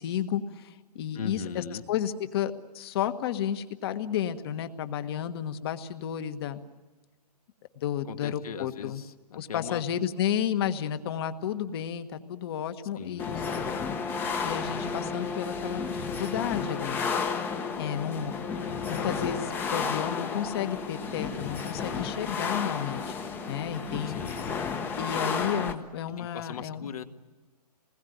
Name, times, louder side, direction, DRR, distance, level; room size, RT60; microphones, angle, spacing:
voice 1, 0.0-6.6 7.8-9.0 9.4-13.7 14.4-17.1 17.8-18.4 18.9-23.2 23.5-24.2 25.0-26.9, left 9 dB, 40° left, 9 dB, 1.5 m, -32 dB
voice 2, 1.1-1.9 8.1-9.8 13.0-13.4 18.0-18.1 24.1-24.7 26.2-27.0, left 7 dB, 60° left, 7 dB, 1.8 m, -39 dB
sound 1, 13.2-25.7, left 5 dB, 10° left, 1.0 m, -32 dB
27.0 x 20.5 x 9.4 m, 1.2 s
hypercardioid pair, 160°, 21 cm